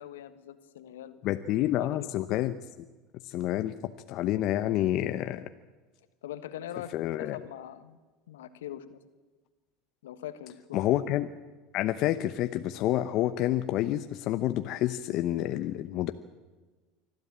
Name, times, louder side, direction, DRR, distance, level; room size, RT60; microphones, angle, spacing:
voice 1, 0.0-1.2 1.6-2.1 6.2-8.0 8.3-9.0 10.0-10.8, left 11 dB, 80° left, 11 dB, 1.4 m, -42 dB
voice 2, 1.2-2.5 3.3-3.7 4.1-5.5 6.9-7.4 10.7-11.3 11.7-16.1, left 13 dB, 55° left, 9 dB, 0.8 m, -28 dB
24.5 x 13.5 x 8.8 m, 1.3 s
hypercardioid pair, 85°, 0 cm